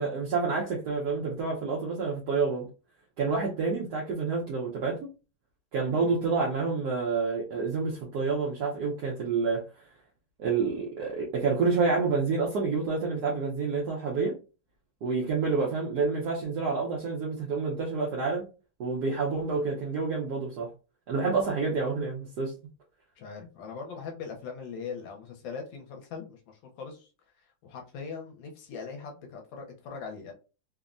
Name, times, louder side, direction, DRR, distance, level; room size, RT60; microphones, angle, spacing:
voice 1, 0.0-2.7 3.2-5.1 5.7-9.6 10.4-14.4 15.0-18.4 18.8-20.7 21.1-22.5, right 4 dB, 65° right, 1.1 m, -28 dB
voice 2, 23.2-27.1 27.6-30.3, left 5 dB, 75° left, 1.4 m, -40 dB
3.4 x 2.1 x 2.4 m
omnidirectional pair, 2.2 m